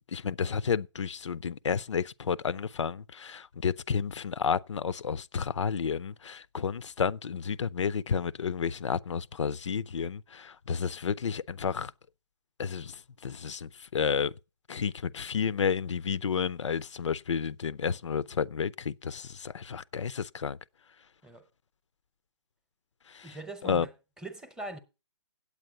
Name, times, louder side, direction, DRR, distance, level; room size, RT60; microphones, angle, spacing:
voice 1, 0.1-11.9 12.6-14.3 14.7-20.6 23.1-23.3 23.6-23.9, left 6 dB, 80° left, 0.5 m, -31 dB
voice 2, 23.2-24.8, right 1 dB, 5° right, 0.8 m, -42 dB
8.6 x 8.0 x 6.5 m
hypercardioid pair, 145°, 15 cm